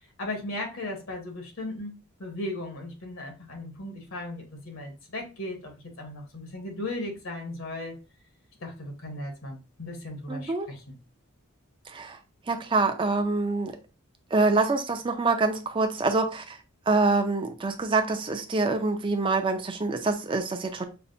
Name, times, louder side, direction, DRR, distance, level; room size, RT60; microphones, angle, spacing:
voice 1, 0.2-1.9 2.2-5.7 6.0-7.9 8.6-11.0, left 1 dB, 65° left, 2 dB, 1.0 m, -36 dB
voice 2, 10.3-10.7 11.9-12.2 12.5-13.7 14.3-16.6 16.9-20.9, right 3 dB, 25° right, 5 dB, 0.4 m, -25 dB
5.5 x 2.1 x 2.6 m, 0.31 s
head